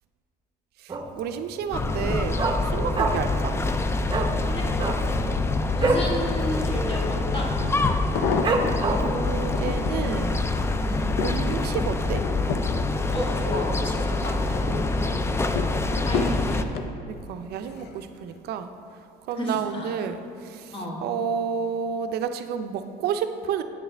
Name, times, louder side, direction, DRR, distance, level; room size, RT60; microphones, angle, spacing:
voice 1, 0.8-3.5 8.9-10.4 11.2-12.2 17.1-18.7 19.3-23.6, right 7 dB, 70° right, 8 dB, 0.5 m, -30 dB
Dog, 0.9-1.3 1.6-1.7 2.0-3.4 3.7-3.8 4.1-4.3 4.7-6.1 6.5-6.6 6.9-7.3 7.8-7.9 8.4-9.2 9.7-9.8, right 3 dB, 25° right, 0.7 m, -26 dB
sound 1, 1.7-16.6, left 2 dB, 15° left, 0.3 m, -26 dB
voice 2, 5.7-7.5 10.8-11.1 13.1-15.4 16.1-16.7 19.4-19.9 20.7-21.0, left 1 dB, 30° left, -2 dB, 1.4 m, -32 dB
sound 2, 7.2-7.3 7.9-8.9 9.4-10.1 10.6-14.0 14.4-14.9 15.6-16.9 17.7-18.0 18.3-18.4, left 5 dB, 75° left, 0.5 m, -31 dB
8.6 x 6.4 x 3.3 m, 2.7 s
cardioid pair, 110°, 17 cm